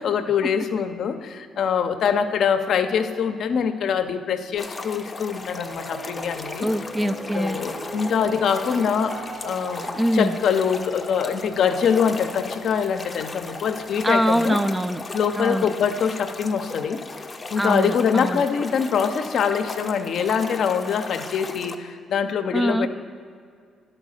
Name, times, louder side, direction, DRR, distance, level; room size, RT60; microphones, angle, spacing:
voice 1, 0.0-6.7 7.3-9.2 9.4-14.6 15.1-17.0 17.5-22.9, left 7 dB, 65° left, 8 dB, 0.5 m, -24 dB
sound 1, 4.6-21.7, left 3 dB, 25° left, 0.6 m, -37 dB
Piano, 5.4-15.8, right 2 dB, 50° right, 1.1 m, -42 dB
voice 2, 6.6-7.6 10.0-10.4 14.0-15.0 15.4-15.7 17.6-18.4 22.5-22.9, equal, 10° right, 11 dB, 0.3 m, -23 dB
11.5 x 4.4 x 6.4 m, 2.2 s
cardioid pair, 90°, 0 cm